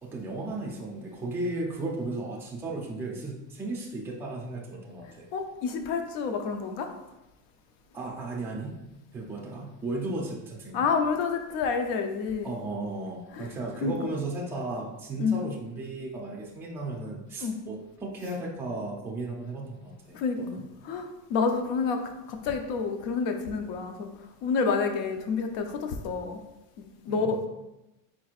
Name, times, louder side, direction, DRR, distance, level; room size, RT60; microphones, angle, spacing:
voice 1, 0.0-5.3 7.9-8.8 9.1-10.9 12.4-20.6 27.1-27.3, right 2 dB, 5° right, -3 dB, 0.4 m, -35 dB
voice 2, 5.3-6.9 10.7-12.5 13.3-13.5 13.8-13.9 15.2-15.4 17.4-17.6 20.1-20.4 20.8-24.1 24.4-26.4 26.8-27.5, left 5 dB, 70° left, 6 dB, 0.7 m, -29 dB
4.5 x 4.3 x 2.4 m, 0.94 s
cardioid pair, 170°, 39 cm